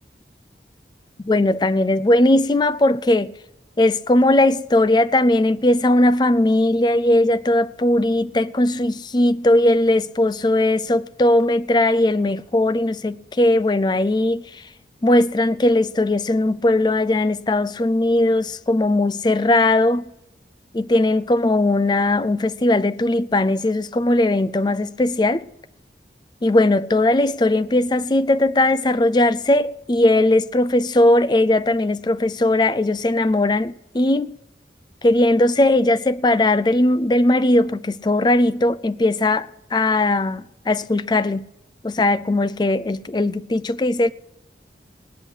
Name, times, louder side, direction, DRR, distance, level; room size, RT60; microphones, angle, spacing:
voice 1, 1.3-3.3 3.8-14.4 15.0-20.0 20.7-25.4 26.4-34.3 35.0-41.4 41.8-44.1, left 1 dB, 25° left, 0.4 m, -18 dB
18.5 x 6.3 x 9.8 m
head